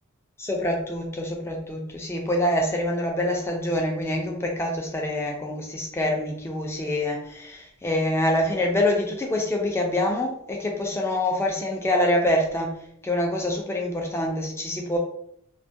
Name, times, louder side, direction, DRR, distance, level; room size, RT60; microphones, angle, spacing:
voice 1, 0.4-12.7 13.0-15.0, left 1 dB, 10° left, 0 dB, 0.3 m, -25 dB
2.2 x 2.1 x 2.6 m, 0.69 s
head